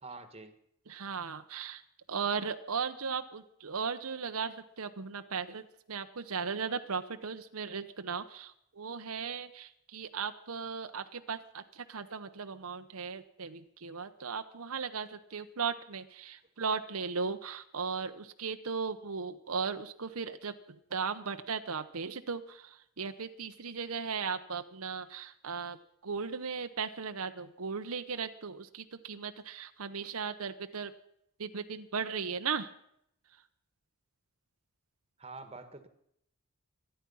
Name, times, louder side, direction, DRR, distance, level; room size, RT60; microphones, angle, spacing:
voice 1, 0.0-0.6 35.2-35.9, right 3 dB, 30° right, 10 dB, 1.5 m, -46 dB
voice 2, 0.9-1.8 2.1-20.5 20.9-25.8 26.0-30.9 31.4-32.7, right 5 dB, 80° right, 8 dB, 0.9 m, -37 dB
26.0 x 10.0 x 5.6 m, 0.72 s
head